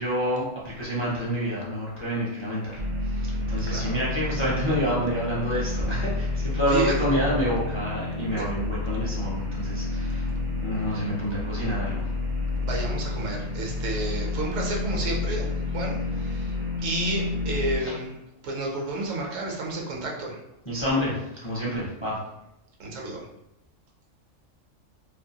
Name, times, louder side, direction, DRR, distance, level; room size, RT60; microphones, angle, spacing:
voice 1, 0.0-12.1 17.8-17.9 20.7-22.2, equal, 35° left, -7 dB, 0.5 m, -28 dB
sound 1, 2.8-17.8, left 2 dB, 50° right, 0.5 m, -29 dB
voice 2, 12.6-16.5 16.8-18.1 18.4-20.4 22.8-23.2, right 2 dB, 75° right, 0 dB, 1.0 m, -31 dB
2.6 x 2.5 x 2.7 m, 0.88 s
omnidirectional pair, 1.3 m